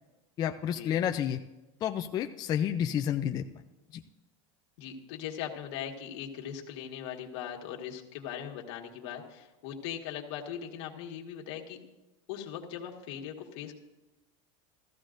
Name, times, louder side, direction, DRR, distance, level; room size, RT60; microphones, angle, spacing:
voice 1, 0.4-1.4 1.8-3.4 3.9-4.0, left 9 dB, 25° left, 5 dB, 0.4 m, -30 dB
voice 2, 4.8-11.8 12.3-13.7, left 9 dB, 65° left, 1 dB, 1.7 m, -40 dB
14.5 x 14.0 x 2.6 m, 1.1 s
supercardioid pair, 155°, 16 cm